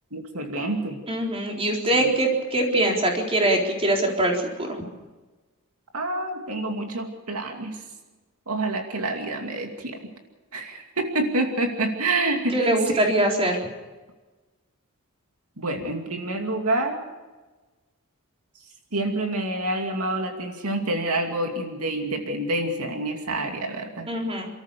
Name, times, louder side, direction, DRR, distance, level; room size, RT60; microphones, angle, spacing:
voice 1, 0.1-1.0 1.9-2.1 5.9-7.8 8.5-10.1 10.5-12.7 15.6-17.0 18.9-24.1, right 2 dB, 85° right, 3 dB, 2.5 m, -27 dB
voice 2, 1.1-4.7 12.5-13.6 24.1-24.5, right 1 dB, 25° right, 0 dB, 4.0 m, -23 dB
28.5 x 14.0 x 6.9 m, 1.2 s
head